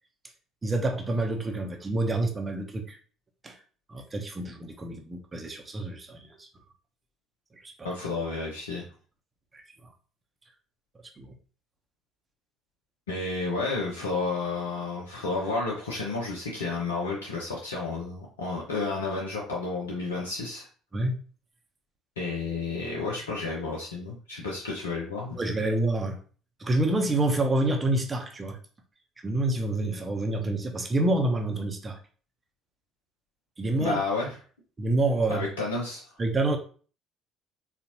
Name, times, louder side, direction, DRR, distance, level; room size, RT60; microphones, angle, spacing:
voice 1, 0.6-3.0 3.4-3.6 3.9-6.5 7.5-7.9 9.5-9.9 11.2-11.3 20.9-21.2 25.4-26.2 26.6-28.6 29.2-32.0 33.6-34.0 34.8-35.5 36.2-36.6, right 2 dB, 25° right, 3 dB, 0.8 m, -28 dB
voice 2, 7.8-8.8 13.1-20.7 22.2-25.4 33.8-34.3 35.3-36.0, left 3 dB, 85° left, -3 dB, 0.6 m, -31 dB
4.0 x 2.5 x 2.9 m, 0.40 s
hypercardioid pair, 55°, 0 cm